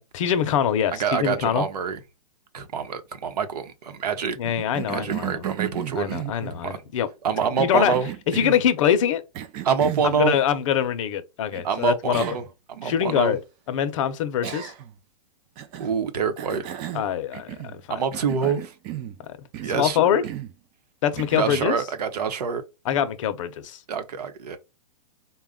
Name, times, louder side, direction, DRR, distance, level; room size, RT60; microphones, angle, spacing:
voice 1, 0.1-1.7 4.4-5.4 5.9-7.1 7.6-8.0 8.3-9.2 10.0-12.2 12.8-13.4 13.7-14.7 16.9-18.0 18.4-18.5 19.7-20.2 21.0-21.7 22.8-23.8, left 9 dB, 55° left, 0.7 m, -24 dB
voice 2, 0.9-2.0 2.5-4.4 4.9-6.2 6.6-6.8 7.2-8.1 9.6-10.4 11.6-13.4 15.8-16.6 17.9-18.7 19.6-20.3 21.4-22.6 23.9-24.6, right 6 dB, 80° right, 0.9 m, -26 dB
Cough, 4.4-6.6 7.4-8.7 9.3-10.1 11.5-11.6 12.1-12.5 12.9-13.0 14.4-15.0 15.6-16.0 16.4-17.8 18.1-19.2 19.5-19.8 20.2-20.6 21.2-21.7, right 12 dB, 25° right, 0.4 m, -34 dB
3.9 x 2.3 x 3.6 m
hypercardioid pair, 145°, 20 cm